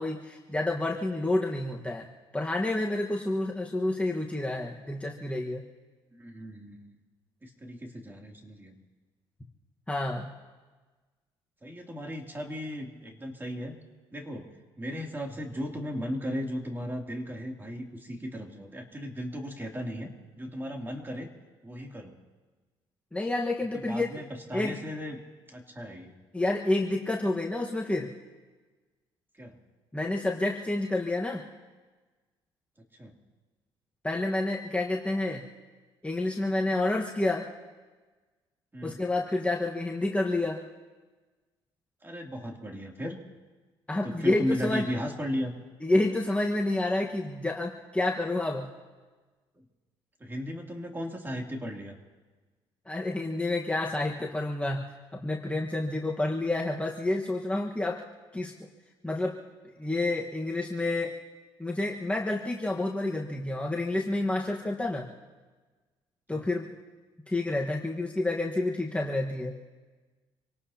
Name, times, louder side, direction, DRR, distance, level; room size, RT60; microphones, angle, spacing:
voice 1, 0.0-2.1 2.3-5.6 9.9-10.3 23.1-24.1 24.5-24.8 26.3-28.1 29.9-31.4 34.0-35.5 36.0-37.4 38.8-40.6 43.9-44.8 45.8-48.7 52.9-58.0 58.3-58.5 59.0-59.4 59.8-61.1 61.6-65.1 66.3-66.7 67.3-69.6, left 2 dB, 10° left, -1 dB, 1.4 m, -29 dB
voice 2, 6.1-7.0 7.4-8.8 11.6-13.7 14.1-14.5 14.8-21.3 21.6-22.2 23.7-25.2 25.5-26.1 29.4-29.6 33.0-33.1 38.7-39.0 42.0-43.2 44.0-45.5 50.2-52.0 66.3-66.5, equal, 20° right, 1 dB, 2.9 m, -36 dB
27.0 x 18.0 x 2.9 m, 1.3 s
supercardioid pair, 75°, 11 cm